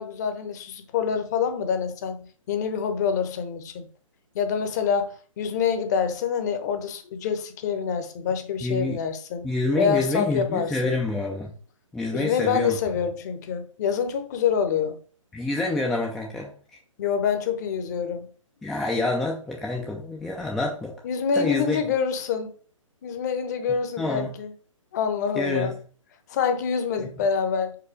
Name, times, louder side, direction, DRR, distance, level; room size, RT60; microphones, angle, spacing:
voice 1, 0.0-3.9 4.3-9.4 9.8-10.9 12.1-15.0 17.0-18.3 21.0-22.5 23.0-24.5 24.9-25.7 26.3-27.8, left 6 dB, 30° left, 0.9 m, -26 dB
voice 2, 8.6-9.0 9.4-11.5 11.9-12.7 15.3-16.5 18.6-21.0 21.4-21.8 24.0-24.3 25.4-25.7 27.0-27.1, left 2 dB, ahead, 0.4 m, -27 dB
4.9 x 4.1 x 4.9 m
figure-of-eight pair, 135°, 17 cm